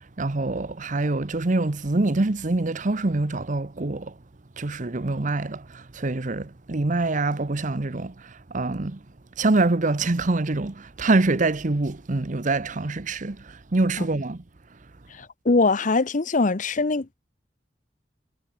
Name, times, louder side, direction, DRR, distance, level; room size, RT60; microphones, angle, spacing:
voice 1, 0.2-4.1 4.6-8.1 8.5-9.0 9.4-14.4, right 2 dB, 45° right, 0.9 m, -25 dB
voice 2, 15.5-17.1, left 3 dB, 45° left, 0.8 m, -21 dB
head